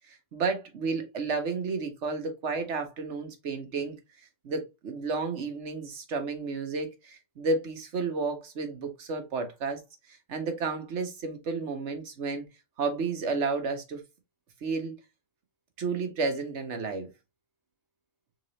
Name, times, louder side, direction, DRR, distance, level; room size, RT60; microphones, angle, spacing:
voice 1, 0.0-4.0 4.4-9.8 10.3-12.4 12.8-14.0 14.6-14.9 15.8-17.1, right 4 dB, 65° right, 1.3 m, -32 dB
3.9 x 3.8 x 3.1 m
omnidirectional pair, 1.3 m